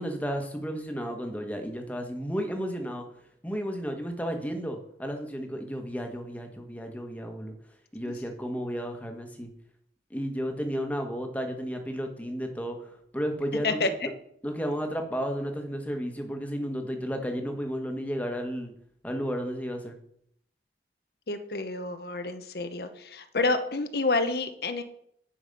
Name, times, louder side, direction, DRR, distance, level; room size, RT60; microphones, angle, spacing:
voice 1, 0.0-3.0 3.4-7.5 7.9-9.5 10.1-13.8 14.4-18.7 19.0-20.0, equal, 10° left, 4 dB, 1.3 m, -33 dB
voice 2, 21.3-24.8, left 3 dB, 60° left, 9 dB, 0.8 m, -29 dB
10.5 x 6.1 x 5.3 m, 0.69 s
head